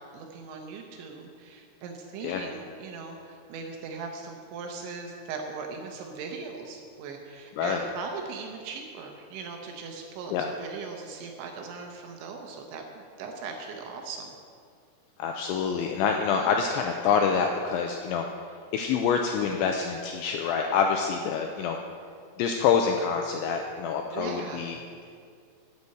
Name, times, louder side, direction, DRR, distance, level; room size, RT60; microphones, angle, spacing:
voice 1, 0.1-14.3 16.3-16.6 24.1-24.7, right 4 dB, 75° right, 2 dB, 2.9 m, -39 dB
voice 2, 15.2-18.3 18.7-21.8 22.4-24.8, left 6 dB, 90° left, 3 dB, 2.6 m, -26 dB
9.7 x 8.4 x 7.8 m, 2.2 s
omnidirectional pair, 6.0 m